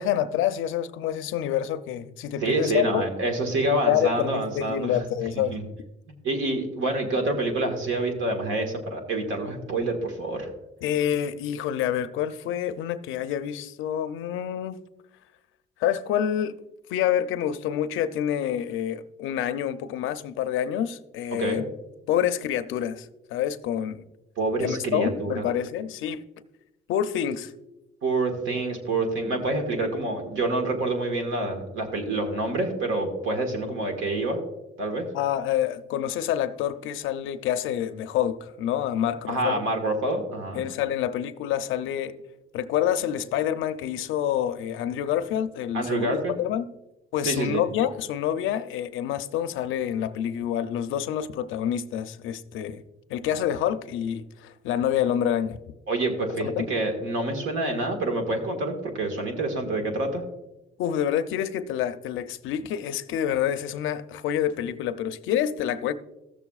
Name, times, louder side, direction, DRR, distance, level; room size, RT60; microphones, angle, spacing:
voice 1, 0.0-3.0 3.8-5.5 10.8-14.8 15.8-16.6 16.9-21.6 22.1-24.0 24.6-26.2 26.9-27.5 35.1-39.6 40.5-42.2 42.5-46.7 47.1-52.8 53.1-55.6 56.4-56.7 60.8-65.9, left 10 dB, 90° left, 0.6 m, -27 dB
voice 2, 2.4-5.0 5.3-5.6 6.1-10.5 21.3-21.6 24.4-25.5 28.0-34.4 34.8-35.1 39.3-40.6 45.7-46.3 47.2-47.6 55.9-60.2, right 2 dB, 80° right, 1.7 m, -27 dB
15.5 x 7.0 x 2.4 m
cardioid pair, 90°, 20 cm